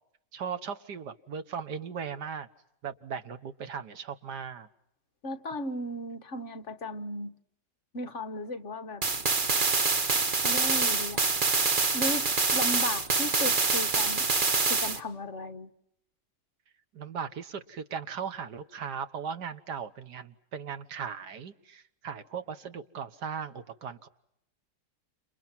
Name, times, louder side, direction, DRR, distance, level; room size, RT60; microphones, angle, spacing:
voice 1, 0.3-2.5 2.8-4.7 16.9-24.1, right 6 dB, 80° right, 1.9 m, -38 dB
voice 2, 5.2-7.3 7.9-9.0 10.4-11.2 11.9-14.2 14.6-15.7, left 1 dB, 50° left, 1.5 m, -36 dB
sound 1, 9.0-15.0, right 4 dB, 35° right, 1.2 m, -26 dB
30.0 x 28.0 x 6.1 m
omnidirectional pair, 1.8 m